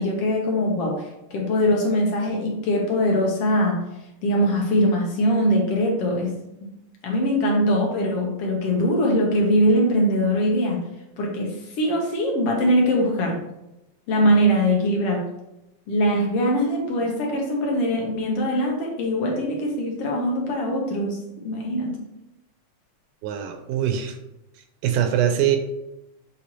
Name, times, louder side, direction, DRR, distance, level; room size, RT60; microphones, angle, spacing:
voice 1, 0.0-3.8 4.2-6.3 7.0-10.8 11.2-13.4 14.1-15.2 15.9-21.2 21.4-22.0, equal, 60° left, 0 dB, 1.8 m, -22 dB
voice 2, 23.2-24.2 24.8-25.6, right 10 dB, 80° right, 6 dB, 2.1 m, -22 dB
7.2 x 4.5 x 3.1 m, 0.91 s
omnidirectional pair, 3.7 m